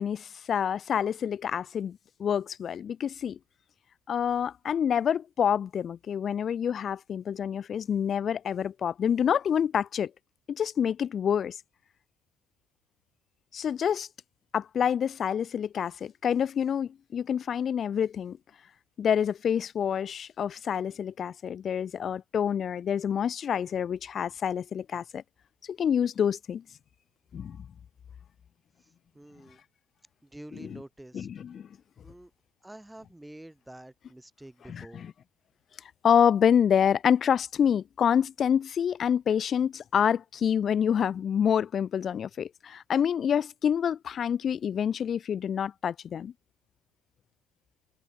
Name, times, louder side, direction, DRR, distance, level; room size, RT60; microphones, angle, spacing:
voice 1, 0.0-3.4 4.1-10.1 10.5-11.6 13.5-14.1 14.5-18.4 19.0-25.2 25.7-26.6 27.3-27.6 30.6-30.8 31.1-31.7 34.7-35.1 36.0-46.3, left 8 dB, 35° left, 0.8 m, -27 dB
voice 2, 28.8-29.6 30.2-31.3 32.0-32.3 32.6-35.1, right 1 dB, 5° right, 1.7 m, -48 dB
cardioid pair, 140°, 0 cm